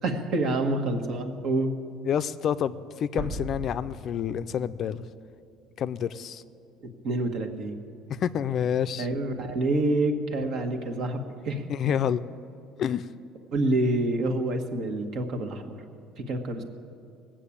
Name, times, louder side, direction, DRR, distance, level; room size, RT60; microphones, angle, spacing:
voice 1, 0.0-1.8 6.8-7.8 9.0-11.6 13.5-15.8 16.2-16.6, right 2 dB, 60° right, 5 dB, 1.5 m, -27 dB
voice 2, 2.1-5.0 5.8-6.4 8.1-9.1 11.7-12.2 12.8-13.1, left 9 dB, 45° left, 13 dB, 0.4 m, -28 dB
sound 1, 3.2-6.0, right 1 dB, 90° right, 2.1 m, -39 dB
19.0 x 7.5 x 8.6 m, 2.4 s
cardioid pair, 120°, 0 cm